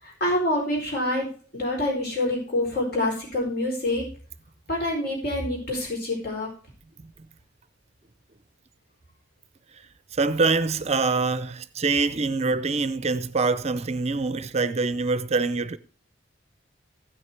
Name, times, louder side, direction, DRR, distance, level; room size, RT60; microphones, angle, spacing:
voice 1, 0.0-1.3 1.5-4.1 4.7-6.5, left 1 dB, 60° left, 4.7 m, -26 dB
voice 2, 10.1-15.8, right 4 dB, 35° right, 0.5 m, -24 dB
15.0 x 6.4 x 4.5 m
head